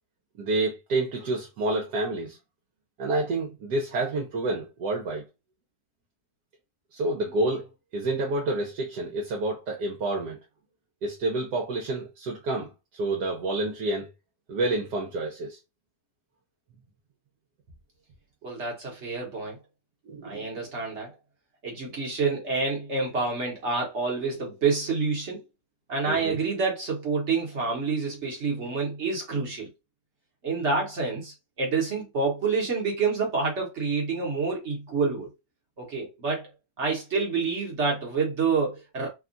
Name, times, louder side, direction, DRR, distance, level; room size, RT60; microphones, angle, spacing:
voice 1, 0.4-2.4 3.0-5.2 6.9-10.4 11.0-14.1 14.5-15.6 20.1-20.4 26.1-26.4, right 2 dB, 75° right, 1.3 m, -29 dB
voice 2, 18.4-19.6 20.2-21.1 21.6-25.4 25.9-29.7 30.4-35.3 35.8-36.5 36.8-39.1, right 4 dB, 50° right, 1.1 m, -28 dB
3.4 x 2.3 x 2.5 m
omnidirectional pair, 1.8 m